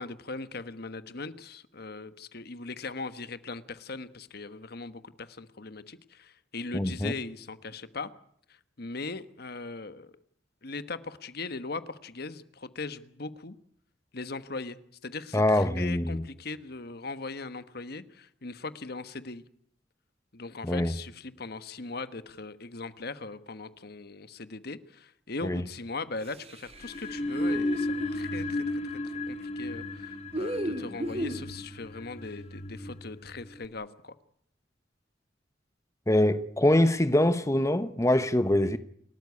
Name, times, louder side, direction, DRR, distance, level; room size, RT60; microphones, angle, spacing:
voice 1, 0.0-8.1 8.5-10.1 10.6-13.5 14.1-19.4 20.3-34.1, left 3 dB, 55° left, 1.3 m, -39 dB
voice 2, 6.7-7.1 15.3-16.2 20.6-21.0 25.4-25.6 36.1-38.8, left 1 dB, 15° left, 1.0 m, -24 dB
sound 1, 26.2-28.4 30.3-31.5, right 1 dB, 35° right, 2.2 m, -35 dB
sound 2, 26.7-33.6, left 1 dB, 35° left, 1.6 m, -34 dB
29.0 x 13.5 x 9.6 m
head